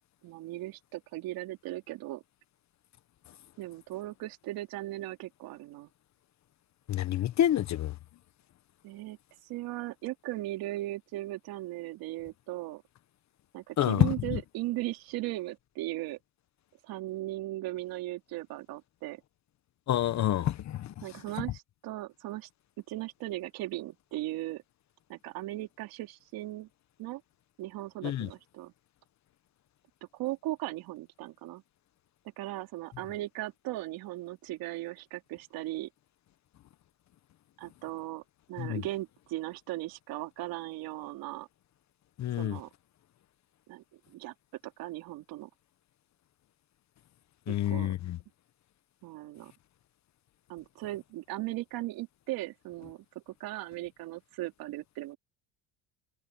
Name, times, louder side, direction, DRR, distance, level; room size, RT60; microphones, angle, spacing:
voice 1, 0.2-2.2 3.6-5.9 8.8-9.2 9.4-12.8 13.5-16.2 16.9-19.2 21.0-22.5 22.9-24.6 25.1-26.7 27.0-27.2 27.6-28.7 30.1-31.6 32.4-35.9 37.6-38.2 38.5-41.5 42.4-42.7 43.7-44.3 44.8-45.5 47.5-47.9 49.0-49.5 50.5-55.2, right 17 dB, 70° right, 3.5 m, -38 dB
voice 2, 6.9-7.9 13.8-14.1 19.9-20.9 28.0-28.3 38.6-38.8 42.2-42.6 47.5-48.2, left 12 dB, 50° left, 1.4 m, -28 dB
supercardioid pair, 95°, 37 cm